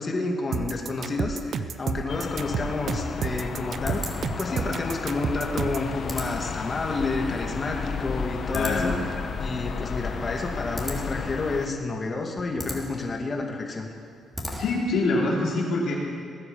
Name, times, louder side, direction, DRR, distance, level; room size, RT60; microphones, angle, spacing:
voice 1, 0.0-8.9 9.4-13.9, left 3 dB, 35° left, 1 dB, 2.4 m, -30 dB
sound 1, 0.5-5.9, right 6 dB, 55° right, 0.6 m, -30 dB
sound 2, 2.1-11.7, left 5 dB, 55° left, 0.9 m, -33 dB
sound 3, 3.8-15.0, equal, ahead, 3.0 m, -40 dB
voice 2, 8.5-9.0 14.6-15.9, left 2 dB, 75° left, -3 dB, 3.4 m, -25 dB
18.5 x 9.6 x 7.2 m, 2.3 s
cardioid pair, 90°, 0 cm